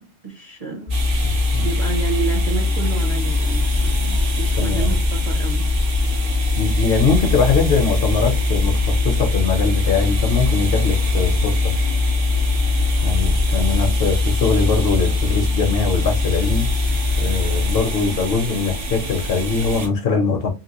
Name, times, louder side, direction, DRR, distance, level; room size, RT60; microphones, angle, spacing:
voice 1, 0.0-1.0 1.6-5.7 12.9-13.5, right 6 dB, 45° right, 0.5 m, -30 dB
sound 1, 0.9-17.8, left 4 dB, 25° left, 0.4 m, -21 dB
sound 2, 0.9-19.9, equal, 70° right, 1.3 m, -26 dB
voice 2, 1.2-1.6 4.6-4.9 6.5-11.6 13.0-16.7 17.2-20.5, left 5 dB, 60° left, 0.7 m, -22 dB
2.9 x 2.8 x 2.8 m
omnidirectional pair, 1.3 m